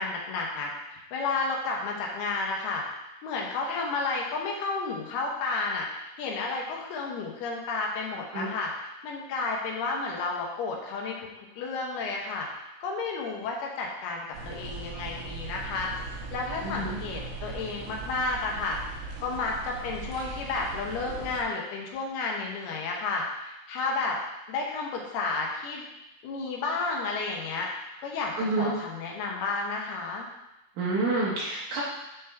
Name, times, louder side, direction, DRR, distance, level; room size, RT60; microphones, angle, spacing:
voice 1, 0.0-2.8 3.2-11.3 11.6-12.5 12.8-15.9 16.3-18.8 19.2-24.2 24.5-25.8 26.2-27.7 28.0-30.3, left 3 dB, 80° left, -1 dB, 3.0 m, -32 dB
sound 1, 14.3-21.4, right 4 dB, 85° right, 1.7 m, -39 dB
voice 2, 16.6-17.0 28.4-28.7 30.8-31.8, right 2 dB, 65° right, -5 dB, 2.1 m, -28 dB
8.1 x 5.2 x 3.4 m, 0.94 s
omnidirectional pair, 4.6 m